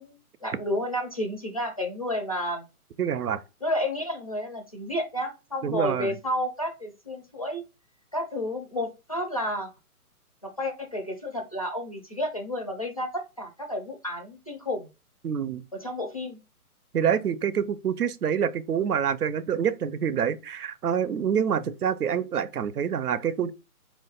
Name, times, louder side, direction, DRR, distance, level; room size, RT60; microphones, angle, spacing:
voice 1, 0.0-2.7 3.6-7.6 8.1-9.7 10.4-14.9 15.7-16.4, left 1 dB, 25° left, 0.4 m, -31 dB
voice 2, 3.0-3.4 5.6-6.2 15.2-15.6 16.9-23.5, right 8 dB, 80° right, 0.6 m, -26 dB
4.3 x 2.5 x 3.8 m
figure-of-eight pair, 145°, 45 cm